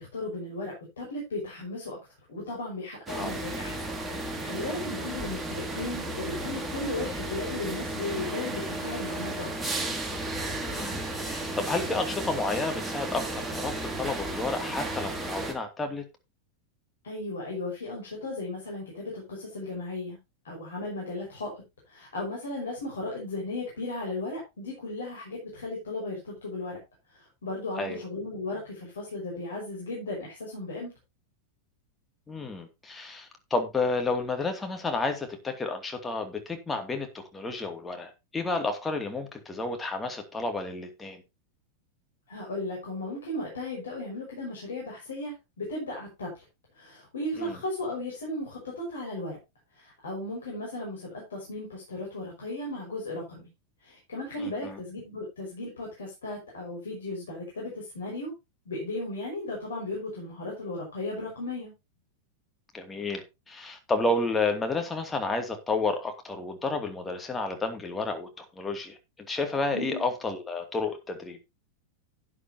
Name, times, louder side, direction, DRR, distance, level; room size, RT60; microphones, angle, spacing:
voice 1, 0.0-2.0 2.3-3.8 4.2-9.5 17.0-20.2 20.4-26.8 27.1-30.9 42.3-46.4 46.7-49.4 49.7-53.5 53.8-58.3 58.7-61.7 69.7-70.0, left 2 dB, 65° left, 5.8 m, -36 dB
sound 1, 3.1-15.5, right 2 dB, 10° right, 2.5 m, -34 dB
voice 2, 10.6-16.0 27.8-28.0 32.3-41.2 47.4-47.6 54.4-54.8 62.7-69.0 69.3-71.4, left 3 dB, 15° left, 2.6 m, -31 dB
11.5 x 9.9 x 2.9 m
figure-of-eight pair, 90°, 0 cm